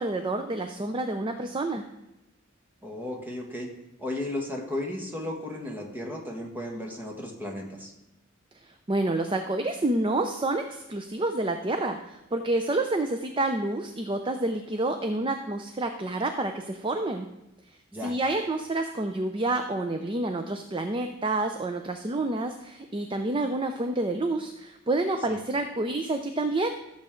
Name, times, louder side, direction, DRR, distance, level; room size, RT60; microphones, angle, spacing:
voice 1, 0.0-1.8 8.6-17.3 17.7-26.7, right 2 dB, 25° right, 6 dB, 0.5 m, -28 dB
voice 2, 2.8-3.7 4.0-7.9 17.9-18.1 25.3-25.4, left 1 dB, 10° right, 0 dB, 1.6 m, -34 dB
15.5 x 7.3 x 3.8 m, 0.93 s
head